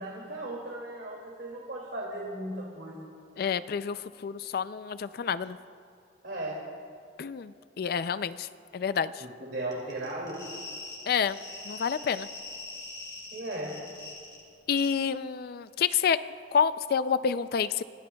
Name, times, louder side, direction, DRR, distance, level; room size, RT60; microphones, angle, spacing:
voice 1, 0.0-3.1 6.2-6.6 9.2-10.4 13.3-13.7, right 1 dB, 75° right, -4 dB, 2.5 m, -36 dB
voice 2, 3.4-5.6 7.2-8.5 8.7-9.2 11.1-11.4 11.7-12.3 14.7-16.2 16.5-17.8, left 7 dB, 60° left, 14 dB, 0.4 m, -28 dB
sound 1, 9.7-14.4 14.7-14.9, left 2 dB, 25° left, 3.5 m, -43 dB
26.0 x 17.0 x 2.3 m, 2.3 s
head